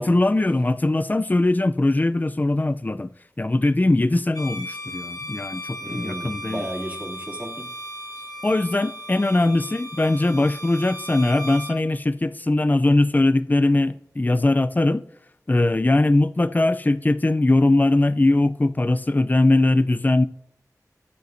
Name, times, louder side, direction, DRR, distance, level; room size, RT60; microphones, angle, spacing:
voice 1, 0.0-3.1 3.4-6.7 8.4-15.0 15.5-20.3, left 2 dB, 25° left, 0.4 m, -20 dB
Bowed string instrument, 4.3-11.8, equal, 65° left, 1.6 m, -36 dB
voice 2, 5.8-7.7, right 1 dB, 20° right, 2.5 m, -34 dB
16.0 x 8.1 x 2.7 m
wide cardioid pair, 45°, 7 cm